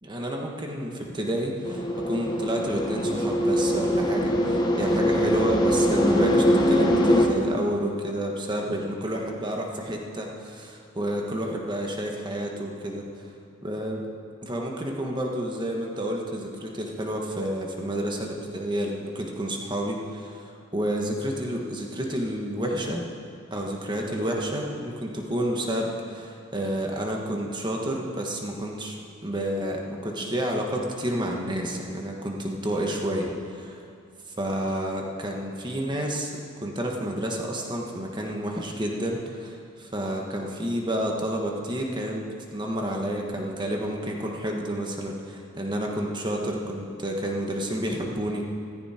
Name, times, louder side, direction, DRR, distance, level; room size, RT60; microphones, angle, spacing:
voice 1, 0.0-13.2 13.6-14.0 14.4-23.0 23.5-33.8 34.4-48.5, right 1 dB, 20° right, 0 dB, 1.5 m, -30 dB
sound 1, 1.6-7.3, equal, 20° left, 1.1 m, -22 dB
15.0 x 14.5 x 4.5 m, 2.4 s
head